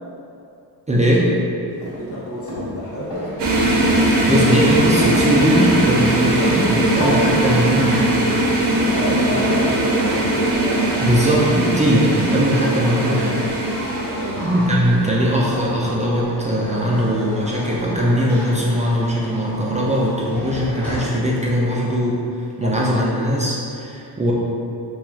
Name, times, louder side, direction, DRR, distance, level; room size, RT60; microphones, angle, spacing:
voice 1, 0.9-1.2 4.3-8.3 11.0-13.5 14.4-22.1 22.6-24.3, equal, 20° right, -5 dB, 0.3 m, -20 dB
sound 1, 1.7-11.3, equal, 65° left, 1.3 m, -32 dB
voice 2, 1.9-3.1 8.8-10.4 13.1-13.2 14.1-14.4 21.7-21.9 22.6-22.9, left 1 dB, 30° left, -8 dB, 0.8 m, -29 dB
sound 2, 3.1-21.0, right 1 dB, 5° left, 0.9 m, -34 dB
sound 3, 3.4-14.7, right 1 dB, 70° right, 0.6 m, -19 dB
3.0 x 2.3 x 2.4 m, 2.6 s
cardioid pair, 80°, 44 cm